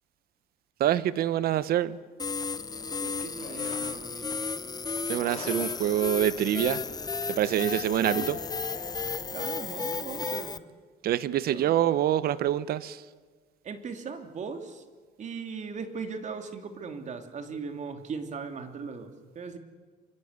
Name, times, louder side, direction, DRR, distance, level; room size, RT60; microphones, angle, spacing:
voice 1, 0.8-2.0 5.1-6.8 7.3-8.4 11.0-13.0, right 12 dB, 65° right, 16 dB, 1.0 m, -26 dB
sound 1, 2.2-10.6, left 4 dB, 25° left, 0.9 m, -33 dB
sound 2, 2.7-4.1 5.0-9.2, left 4 dB, 40° left, 5.3 m, -46 dB
voice 2, 3.0-4.4 8.0-8.3 9.3-10.5 11.5-11.9 13.6-14.8 15.2-19.6, right 5 dB, 45° right, 6 dB, 2.9 m, -39 dB
26.0 x 24.0 x 8.1 m, 1.4 s
cardioid pair, 110°, 17 cm